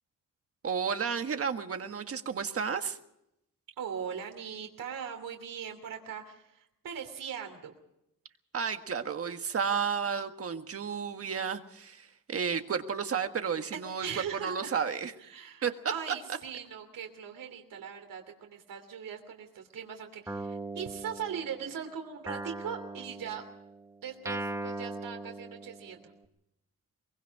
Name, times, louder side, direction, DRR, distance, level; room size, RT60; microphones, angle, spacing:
voice 1, 0.6-3.0 8.5-14.1 14.4-15.1 15.6-15.7, right 6 dB, 45° right, 7 dB, 1.6 m, -32 dB
voice 2, 3.8-7.7 13.7-14.7 15.2-23.4 24.0-26.1, right 7 dB, 80° right, 4 dB, 3.1 m, -40 dB
Guitar, 20.3-21.8 22.3-26.1, right 2 dB, 10° right, 1.2 m, -40 dB
23.5 x 23.0 x 4.8 m, 0.82 s
wide cardioid pair, 175°, 33 cm